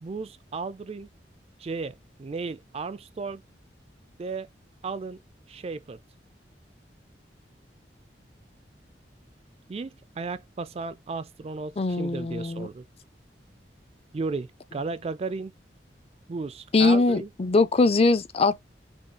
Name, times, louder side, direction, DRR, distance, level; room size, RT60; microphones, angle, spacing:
voice 1, 0.0-1.1 1.6-3.4 4.2-4.5 4.8-5.2 5.5-6.0 9.7-12.8 14.1-15.5 16.3-17.3, right 4 dB, 35° right, 0.4 m, -34 dB
voice 2, 11.8-12.7 16.7-18.6, left 3 dB, 35° left, 0.5 m, -22 dB
5.4 x 2.3 x 2.8 m
head